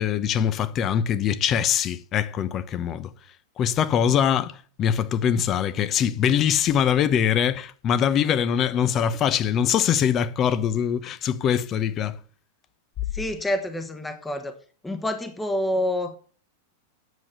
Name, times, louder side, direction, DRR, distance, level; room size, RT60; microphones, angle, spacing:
voice 1, 0.0-3.1 3.6-12.2, left 9 dB, 35° left, 0.9 m, -23 dB
voice 2, 13.1-14.6 14.8-16.2, left 1 dB, 10° left, 1.3 m, -27 dB
9.5 x 7.3 x 7.7 m
hypercardioid pair, 95°, 0 cm